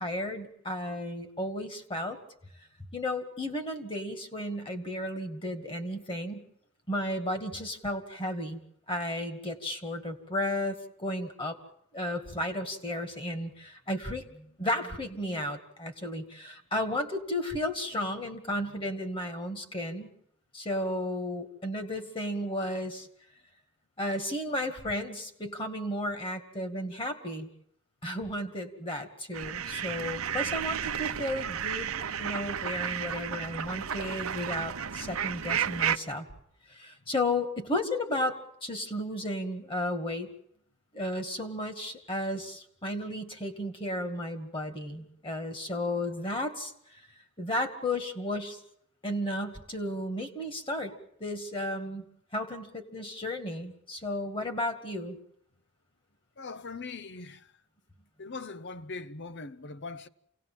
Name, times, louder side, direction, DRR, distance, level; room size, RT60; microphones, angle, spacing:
voice 1, 0.0-2.2 2.9-6.4 6.9-8.6 8.9-11.6 11.9-20.1 20.5-23.1 24.0-27.5 28.0-36.3 36.7-40.3 40.9-47.0 47.4-48.6 49.0-50.9 51.2-52.1 52.3-55.2, left 1 dB, 25° left, 2.1 m, -33 dB
sound 1, 29.3-36.0, right 8 dB, 70° right, 0.9 m, -32 dB
voice 2, 56.4-57.5 58.2-60.1, left 3 dB, 50° left, 0.8 m, -41 dB
28.0 x 18.5 x 7.5 m
head